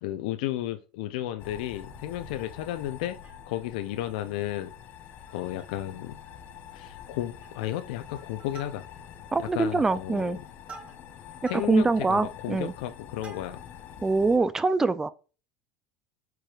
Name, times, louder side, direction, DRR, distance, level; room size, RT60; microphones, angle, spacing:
voice 1, 0.0-3.2 3.5-4.7 5.3-6.2 6.7-8.8 9.5-10.4 11.5-13.6, left 13 dB, 80° left, 0.4 m, -33 dB
sound 1, 1.4-14.4, left 9 dB, 40° left, 0.6 m, -46 dB
Plucked string instrument, 3.0-3.8 4.2-4.3 4.6-4.8 5.3-5.9 6.2-6.3 6.7-7.1 7.4-7.8 8.2-9.2 9.7-13.8 14.4-14.5, right 4 dB, 30° right, 2.3 m, -50 dB
voice 2, 9.3-10.4 11.4-12.7 14.0-15.1, right 3 dB, 10° right, 0.3 m, -24 dB
4.8 x 4.6 x 2.3 m
supercardioid pair, 145°, 4 cm